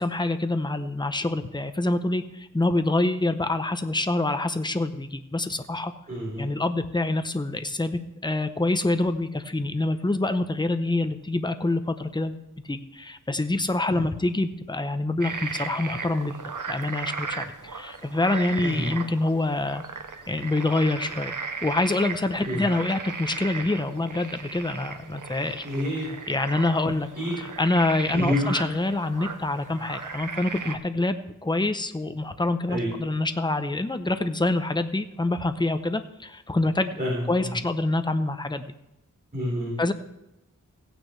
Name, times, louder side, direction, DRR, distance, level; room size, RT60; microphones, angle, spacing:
voice 1, 0.0-5.9 6.4-12.3 12.7-16.3 16.7-19.8 20.3-21.3 21.6-25.6 26.3-27.1 27.4-37.0 37.3-38.7 39.8-39.9, left 2 dB, 15° left, 9 dB, 0.7 m, -26 dB
voice 2, 6.1-6.4 13.9-14.0 18.6-18.9 22.4-22.6 25.6-26.1 27.2-27.4 28.1-28.5 32.7-32.9 37.0-37.5 39.3-39.7, left 1 dB, 30° right, -6 dB, 3.9 m, -28 dB
sound 1, 15.2-30.8, right 5 dB, 75° right, 0.9 m, -36 dB
16.5 x 9.2 x 3.3 m, 0.89 s
wide cardioid pair, 65°, 32 cm